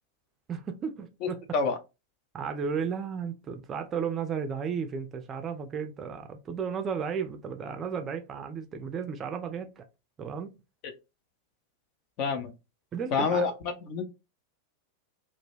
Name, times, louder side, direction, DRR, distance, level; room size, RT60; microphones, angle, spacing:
voice 1, 0.5-1.5 2.3-9.8 10.2-10.6 12.9-13.4, right 6 dB, 25° right, 0.4 m, -34 dB
voice 2, 1.2-1.8 12.2-12.5 13.1-13.5 13.9-14.0, left 4 dB, 40° left, 0.5 m, -27 dB
2.2 x 2.1 x 3.1 m
figure-of-eight pair, 90°, 0 cm